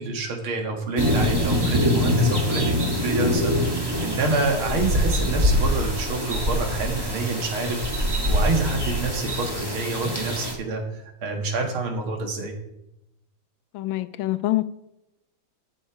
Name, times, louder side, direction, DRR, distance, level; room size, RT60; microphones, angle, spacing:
voice 1, 0.0-10.8 11.2-12.5, right 3 dB, 90° right, 2.6 m, -27 dB
sound 1, 1.0-10.5, left 1 dB, 10° right, 1.6 m, -24 dB
voice 2, 13.7-14.6, left 16 dB, 80° left, 1.3 m, -25 dB
14.0 x 6.4 x 4.8 m
omnidirectional pair, 2.2 m